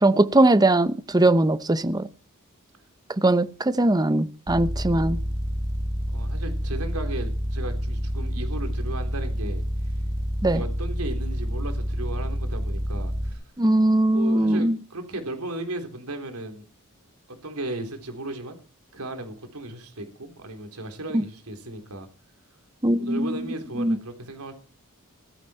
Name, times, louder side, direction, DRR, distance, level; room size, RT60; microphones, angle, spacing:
voice 1, 0.0-2.1 3.2-5.2 10.4-10.6 13.6-14.8 21.1-21.2 22.8-23.3 23.8-24.0, right 1 dB, 20° right, 0.8 m, -20 dB
sound 1, 4.5-13.3, equal, 60° right, 3.5 m, -28 dB
voice 2, 6.1-9.6 10.5-13.4 14.1-16.6 17.4-18.6 18.9-22.1 22.9-24.5, right 2 dB, 85° right, 3.6 m, -35 dB
16.0 x 14.5 x 4.4 m
head